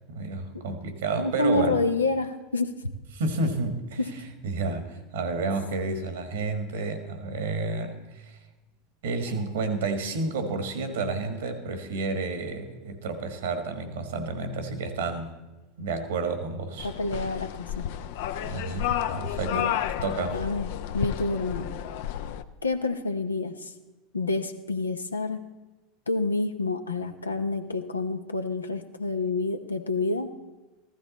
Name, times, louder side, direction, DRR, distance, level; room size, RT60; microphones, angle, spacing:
voice 1, 0.1-1.8 3.1-8.4 9.0-15.3 15.8-16.9 18.4-19.7 20.0-20.4, right 3 dB, 70° right, 9 dB, 1.5 m, -30 dB
voice 2, 1.2-2.9 4.0-4.1 16.8-17.9 19.5-19.7 20.3-21.7 22.6-23.7 24.1-25.4 26.1-30.3, left 3 dB, 90° left, 7 dB, 0.8 m, -28 dB
sound 1, 16.8-22.4, left 10 dB, 65° left, 0.5 m, -31 dB
15.0 x 13.0 x 4.1 m, 1.1 s
figure-of-eight pair, 80°, 0 cm